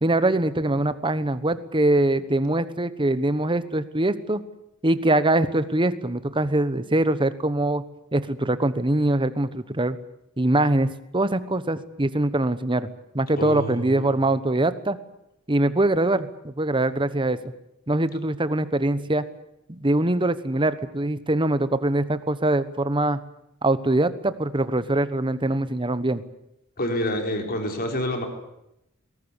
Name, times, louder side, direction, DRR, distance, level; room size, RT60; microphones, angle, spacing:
voice 1, 0.0-4.4 4.8-10.0 10.4-12.9 13.1-15.0 15.5-17.4 17.9-19.2 19.7-23.2 23.6-26.2, right 1 dB, 20° right, 13 dB, 1.1 m, -23 dB
voice 2, 13.4-14.2 26.8-28.3, left 1 dB, 45° left, 4 dB, 4.4 m, -28 dB
22.0 x 18.5 x 9.8 m, 0.84 s
head